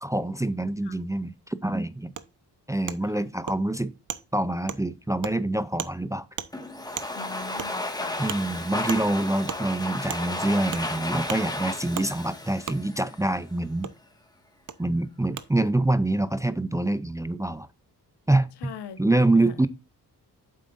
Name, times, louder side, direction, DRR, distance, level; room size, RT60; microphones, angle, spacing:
voice 1, 0.0-2.1 2.7-3.9 4.3-6.3 8.2-13.9 14.8-17.7 18.3-18.7 19.0-19.7, right 2 dB, 10° right, 0.5 m, -26 dB
Wood, 2.2-2.3 2.9-3.0 3.5-3.6 4.1-4.2 4.7-4.8 5.2-5.3 5.8-5.9 6.4-6.5 7.0-7.1 7.6-7.7 8.3-8.4 8.9-9.0 9.5-9.6 10.1-10.2 10.7-10.9 11.3-11.4 11.9-12.1 12.7-12.8 13.8-13.9 14.7-14.8 15.4-15.5, right 8 dB, 50° right, 0.9 m, -34 dB
Domestic sounds home sounds, 6.5-13.4, left 1 dB, 10° left, 1.6 m, -33 dB
voice 2, 7.1-8.2 18.6-19.6, left 6 dB, 85° left, 1.3 m, -41 dB
9.1 x 7.5 x 2.5 m
cardioid pair, 100°, 40 cm